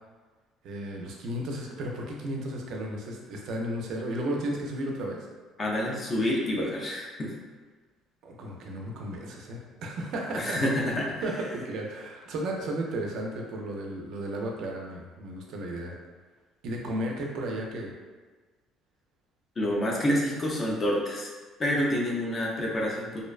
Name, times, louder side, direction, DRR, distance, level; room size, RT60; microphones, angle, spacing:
voice 1, 0.6-5.2 8.2-10.6 11.2-15.9 16.6-17.9, right 1 dB, 55° right, 0 dB, 0.3 m, -34 dB
voice 2, 5.6-7.3 10.3-11.2 19.6-21.3 21.6-23.2, left 1 dB, 20° left, -2 dB, 0.4 m, -28 dB
2.5 x 2.1 x 2.3 m, 1.4 s
cardioid pair, 175°, 0 cm